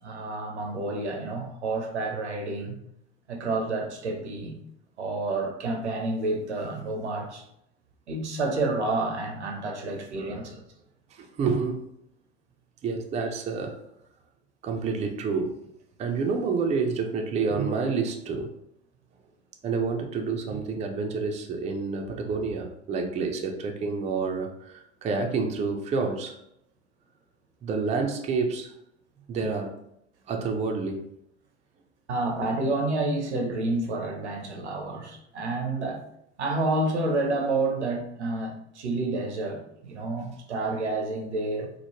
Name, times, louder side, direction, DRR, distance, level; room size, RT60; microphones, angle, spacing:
voice 1, 0.0-2.8 3.3-4.5 5.0-7.4 8.1-10.6 32.1-36.0 36.4-41.7, right 2 dB, 80° right, 2 dB, 0.6 m, -29 dB
voice 2, 9.9-10.5 11.1-11.8 12.8-13.8 14.6-15.6 16.0-18.5 19.6-26.4 27.6-28.8 29.3-29.8 30.3-31.0 33.5-33.6, right 4 dB, 20° right, 3 dB, 0.4 m, -29 dB
3.0 x 2.0 x 2.8 m, 0.76 s
figure-of-eight pair, 70°, 34 cm